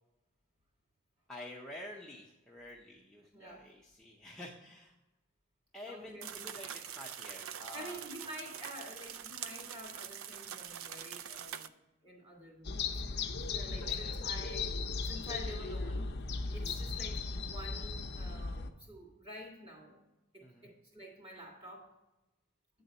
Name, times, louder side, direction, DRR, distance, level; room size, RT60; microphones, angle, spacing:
voice 1, 1.3-4.9 5.7-8.0 13.8-14.1 15.3-15.9 20.4-20.7, left 1 dB, 5° left, -4 dB, 0.6 m, -49 dB
voice 2, 3.3-3.7 5.8-6.4 7.7-11.7 12.0-14.7 15.0-16.1 16.5-20.0 20.3-22.0, equal, 25° right, -2 dB, 2.6 m, -49 dB
sound 1, 6.2-11.7, right 9 dB, 70° right, 0.4 m, -44 dB
sound 2, 12.6-18.7, left 4 dB, 50° left, 0.6 m, -37 dB
9.1 x 3.9 x 5.3 m, 0.99 s
head